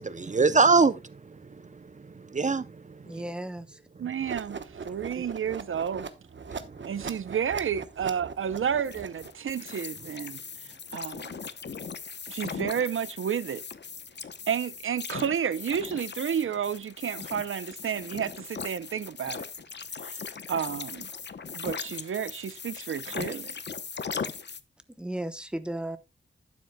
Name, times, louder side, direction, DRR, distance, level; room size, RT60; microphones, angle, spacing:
voice 1, 0.0-3.0 6.5-6.8, right 4 dB, 35° right, 0.6 m, -25 dB
voice 2, 3.0-3.8 25.0-26.0, right 1 dB, 5° right, 0.9 m, -35 dB
voice 3, 4.0-6.1 6.8-11.4 12.3-13.6 14.5-19.4 20.0-20.2 20.5-21.1 21.5-23.6, right 8 dB, 85° right, 0.6 m, -31 dB
sound 1, 4.2-9.5, right 5 dB, 65° right, 1.1 m, -40 dB
sound 2, 8.8-24.6, left 5 dB, 60° left, 0.8 m, -39 dB
12.0 x 9.2 x 2.2 m
wide cardioid pair, 120°, 21 cm